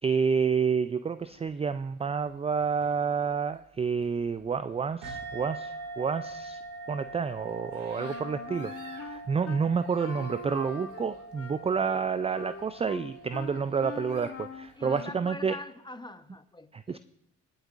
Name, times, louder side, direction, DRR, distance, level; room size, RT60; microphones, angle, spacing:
voice 1, 0.0-6.6 6.9-15.6 16.7-17.0, right 6 dB, 20° right, 0.3 m, -29 dB
sound 1, 1.2-15.0, right 3 dB, 60° right, 2.2 m, -58 dB
sound 2, 5.0-14.1, right 3 dB, 75° right, 2.4 m, -43 dB
Wind instrument woodwind instrument, 8.0-9.6 10.0-15.3, left 5 dB, 40° left, 1.0 m, -43 dB
voice 2, 14.8-17.0, left 2 dB, 10° left, 0.9 m, -43 dB
22.5 x 8.0 x 2.5 m
hypercardioid pair, 50°, 36 cm